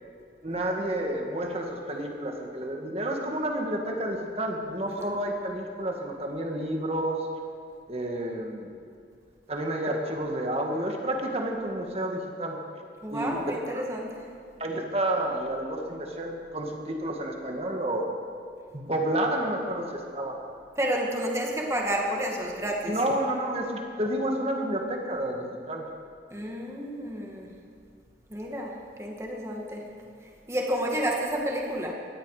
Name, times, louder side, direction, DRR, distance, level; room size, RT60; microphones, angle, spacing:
voice 1, 0.4-7.2 7.9-8.7 9.5-12.6 13.1-13.8 14.6-18.1 18.7-20.4 22.9-25.9, right 1 dB, 35° right, 1 dB, 1.8 m, -30 dB
voice 2, 13.0-14.3 20.8-23.0 26.3-27.5 28.3-29.9 30.5-31.9, right 1 dB, 15° right, 0 dB, 2.1 m, -30 dB
18.5 x 14.5 x 4.9 m, 2.4 s
head